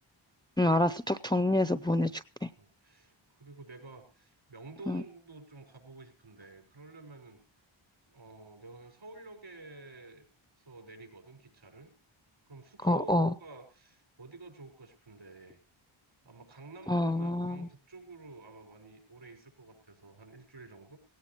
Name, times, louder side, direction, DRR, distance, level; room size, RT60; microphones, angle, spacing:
voice 1, 0.6-2.5 4.9-5.0 12.8-13.3 16.9-17.7, left 1 dB, 10° left, 12 dB, 0.6 m, -27 dB
voice 2, 2.6-7.4 8.1-10.2 10.6-11.9 12.5-15.6 16.2-21.0, right 2 dB, 60° right, 5 dB, 6.1 m, -50 dB
17.5 x 17.5 x 3.0 m, 0.33 s
cardioid pair, 60°, 50 cm